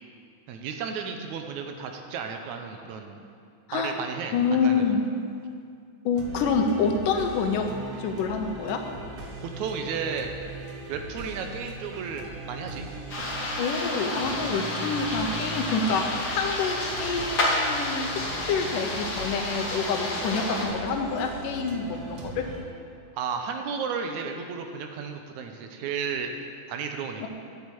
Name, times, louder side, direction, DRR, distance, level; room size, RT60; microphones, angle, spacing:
voice 1, 0.5-3.2 3.7-5.0 9.4-10.3 10.9-12.9 23.1-26.3 26.7-27.3, right 6 dB, 75° right, 5 dB, 2.0 m, -33 dB
voice 2, 4.3-5.0 6.1-7.7 8.0-8.8 13.6-16.1 16.3-22.5 27.2-27.3, left 5 dB, 85° left, 4 dB, 2.6 m, -27 dB
sound 1, 6.1-22.6, right 3 dB, 60° right, 1.9 m, -39 dB
sound 2, 13.1-20.7, left 1 dB, 35° left, 2.0 m, -30 dB
8.4 x 8.4 x 8.4 m, 2.3 s
omnidirectional pair, 3.6 m